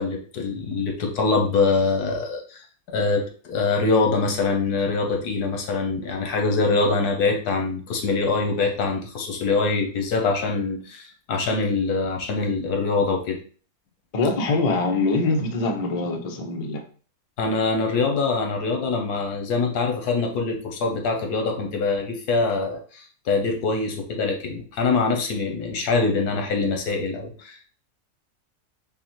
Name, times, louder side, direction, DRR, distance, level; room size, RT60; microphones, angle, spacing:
voice 1, 0.0-2.6 2.9-13.4 17.4-27.7, left 4 dB, 85° left, 3 dB, 1.4 m, -24 dB
voice 2, 14.1-16.8, left 3 dB, 65° left, 3 dB, 0.3 m, -23 dB
5.4 x 2.2 x 3.0 m, 0.40 s
omnidirectional pair, 1.6 m